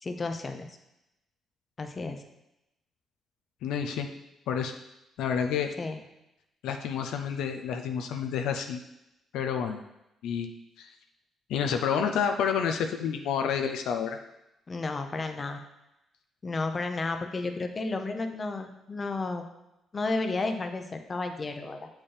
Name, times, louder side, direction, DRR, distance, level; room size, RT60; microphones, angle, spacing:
voice 1, 0.0-0.8 1.8-2.2 5.8-6.0 14.7-15.6 16.4-19.5 19.9-21.9, left 3 dB, 30° left, 6 dB, 0.7 m, -32 dB
voice 2, 3.6-4.1 4.5-4.7 5.2-5.7 6.6-8.8 9.3-9.8 10.2-10.9 11.5-14.2, left 7 dB, 85° left, 5 dB, 0.4 m, -29 dB
7.2 x 4.4 x 3.3 m, 0.89 s
cardioid pair, 90°, 0 cm